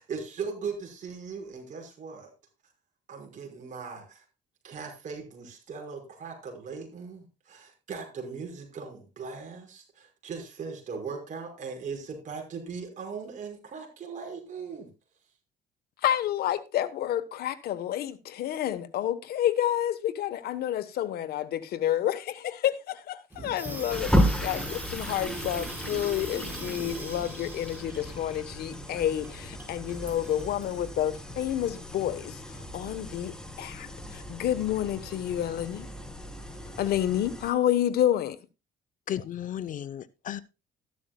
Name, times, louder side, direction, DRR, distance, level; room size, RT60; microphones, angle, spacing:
voice 1, 0.0-2.3 3.1-4.2 4.6-14.9, right 5 dB, 50° right, 5.7 m, -39 dB
voice 2, 16.0-32.4 32.7-35.9 36.8-38.4, left 11 dB, 70° left, 1.2 m, -29 dB
Water tap faucet / Sink (filling or washing), 23.3-30.9, right 2 dB, 10° right, 4.9 m, -41 dB
sound 1, 23.9-37.5, equal, 5° left, 2.3 m, -34 dB
voice 3, 39.1-40.4, left 10 dB, 50° left, 0.8 m, -34 dB
13.5 x 12.0 x 2.3 m
cardioid pair, 110°, 17 cm